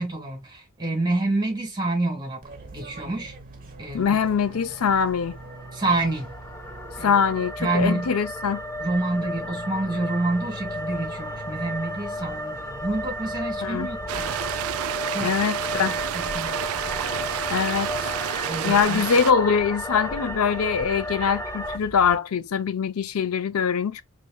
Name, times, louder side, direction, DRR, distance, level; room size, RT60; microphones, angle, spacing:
voice 1, 0.0-3.3 3.8-4.2 5.7-6.3 7.0-7.2 7.6-8.1 8.8-14.3 15.1-15.3 15.7-16.6 18.5-19.0, right 2 dB, 20° right, 1.6 m, -28 dB
Fixed-wing aircraft airplane, 2.4-22.1, right 1 dB, 40° right, 1.2 m, -43 dB
voice 2, 3.9-5.4 7.0-8.6 13.6-13.9 15.2-16.0 17.5-18.1 18.6-24.0, left 6 dB, 75° left, 0.5 m, -23 dB
sound 1, 4.5-21.8, equal, 10° left, 0.4 m, -34 dB
sound 2, 14.1-19.3, right 11 dB, 70° right, 0.3 m, -29 dB
4.2 x 3.3 x 2.3 m
head